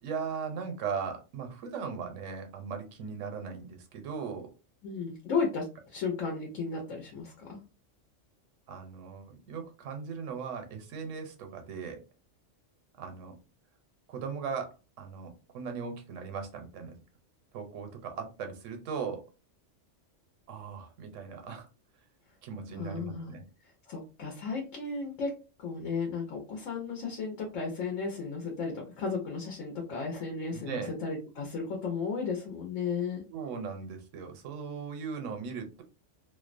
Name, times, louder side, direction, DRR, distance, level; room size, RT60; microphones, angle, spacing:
voice 1, 0.0-4.5 8.7-12.0 13.0-13.4 14.1-14.7 15.0-17.0 17.5-19.2 20.5-21.7 22.4-23.4 30.5-30.9 33.3-35.8, right 6 dB, 85° right, 5 dB, 1.0 m, -38 dB
voice 2, 4.8-7.6 22.7-23.3 23.9-33.2, left 4 dB, 90° left, 1 dB, 1.1 m, -34 dB
2.6 x 2.1 x 2.4 m, 0.31 s
omnidirectional pair, 1.3 m